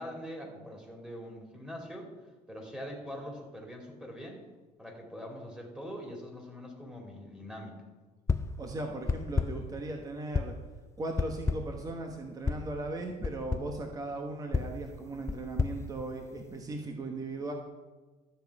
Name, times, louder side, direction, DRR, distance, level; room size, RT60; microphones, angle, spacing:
voice 1, 0.0-2.1 2.5-4.4 4.8-7.8, equal, 5° right, 1 dB, 2.7 m, -43 dB
sound 1, 8.3-8.6 9.1-9.7 10.3-10.7 11.2-11.8 12.5-12.7 13.2-13.8 14.5-16.6, left 4 dB, 20° left, 0.4 m, -32 dB
voice 2, 8.6-10.5 11.0-17.5, right 2 dB, 25° right, 3 dB, 1.1 m, -38 dB
13.0 x 7.3 x 4.8 m, 1.3 s
cardioid pair, 120°, 15 cm